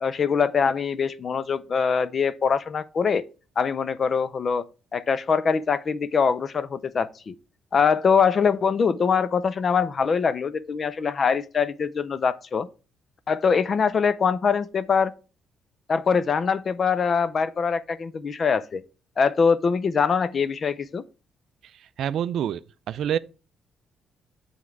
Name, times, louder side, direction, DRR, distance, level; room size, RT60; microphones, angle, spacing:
voice 1, 0.0-3.3 3.6-4.6 4.9-7.3 7.7-12.7 13.3-15.1 15.9-18.8 19.2-21.0, left 6 dB, 45° left, 0.5 m, -23 dB
voice 2, 22.0-22.6 22.9-23.2, right 9 dB, 70° right, 0.3 m, -26 dB
7.5 x 3.5 x 4.7 m
cardioid pair, 90°, 0 cm